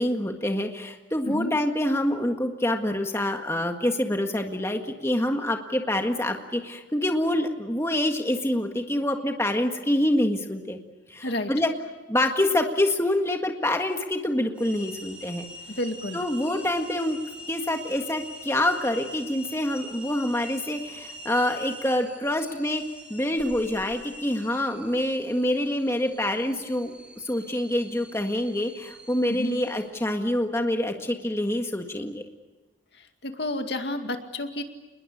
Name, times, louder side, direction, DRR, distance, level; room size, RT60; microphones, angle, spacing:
voice 1, 0.0-10.8 11.1-11.7 12.1-15.5 16.1-17.2 17.5-32.2, left 1 dB, 15° left, 4 dB, 1.7 m, -26 dB
sound 1, 14.5-29.9, equal, 5° right, 4.9 m, -44 dB
voice 2, 15.8-16.2 29.3-29.6 33.2-34.6, left 1 dB, 65° left, 6 dB, 2.3 m, -30 dB
28.0 x 21.0 x 8.6 m, 1.2 s
head